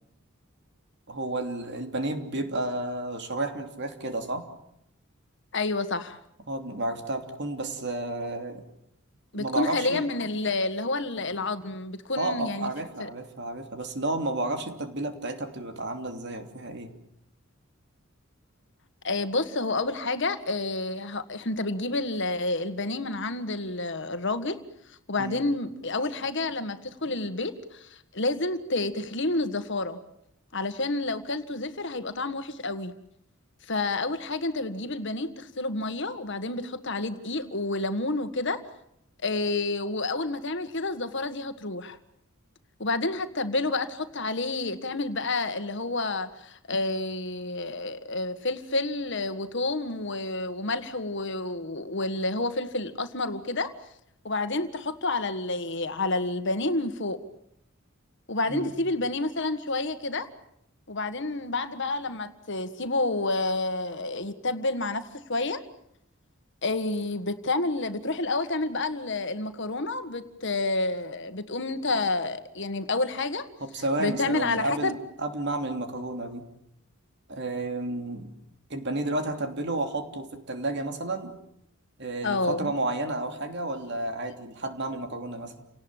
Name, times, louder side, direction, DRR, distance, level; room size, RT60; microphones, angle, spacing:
voice 1, 1.1-4.5 6.5-8.6 9.3-10.1 12.2-16.9 25.2-25.4 58.5-58.7 73.6-76.5 77.3-78.3 78.7-81.4 82.0-85.7, right 2 dB, 55° right, 6 dB, 3.2 m, -31 dB
voice 2, 5.5-6.2 9.3-12.7 13.0-13.1 19.0-24.6 25.1-30.0 30.5-32.9 33.7-38.6 39.2-42.0 42.8-53.7 54.2-57.2 58.3-60.3 60.9-65.6 66.6-73.5 74.0-75.0 82.2-82.7, left 2 dB, 60° left, 10 dB, 1.8 m, -29 dB
29.5 x 18.5 x 9.1 m, 0.77 s
head